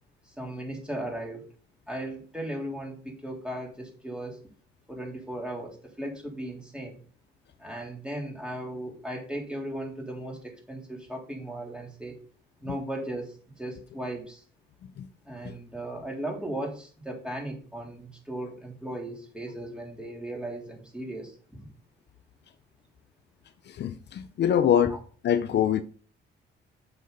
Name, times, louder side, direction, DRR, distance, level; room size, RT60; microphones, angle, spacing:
voice 1, 0.3-1.4 1.9-4.4 4.9-7.0 7.6-12.1 12.6-14.4 15.2-21.7 24.9-25.0, right 1 dB, 5° right, 3.4 m, -37 dB
voice 2, 23.7-25.0 25.2-25.8, left 9 dB, 60° left, 0.6 m, -24 dB
7.7 x 6.3 x 4.0 m
cardioid pair, 90°, 20 cm